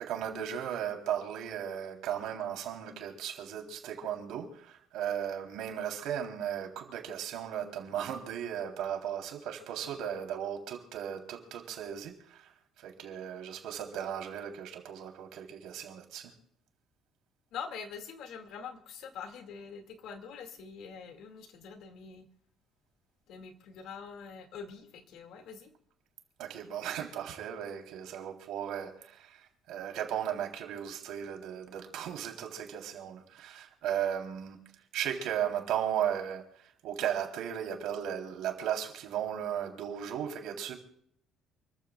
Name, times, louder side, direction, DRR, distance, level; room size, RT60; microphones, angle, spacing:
voice 1, 0.0-12.5 12.8-16.3 26.4-29.4 29.7-34.6 34.9-36.4 36.8-40.7, right 9 dB, 70° right, 3.3 m, -36 dB
voice 2, 17.5-22.3 23.3-25.7, left 6 dB, 60° left, 2.0 m, -44 dB
29.0 x 14.5 x 2.3 m
cardioid pair, 175°, 0 cm